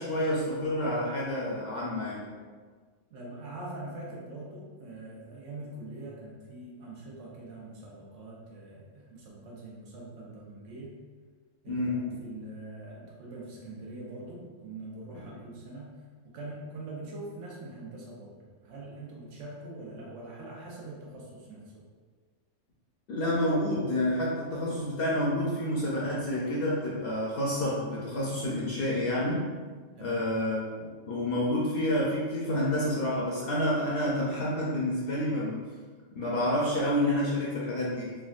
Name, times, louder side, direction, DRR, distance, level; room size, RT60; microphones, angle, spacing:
voice 1, 0.0-2.3 11.7-12.2 23.1-29.5 30.0-35.6 36.1-38.1, left 1 dB, 60° left, -5 dB, 0.7 m, -29 dB
voice 2, 3.1-10.9 11.6-15.9 16.3-18.3 18.6-21.8 29.9-30.2, right 2 dB, 75° right, -4 dB, 1.1 m, -43 dB
3.5 x 2.2 x 2.4 m, 1.5 s
omnidirectional pair, 1.3 m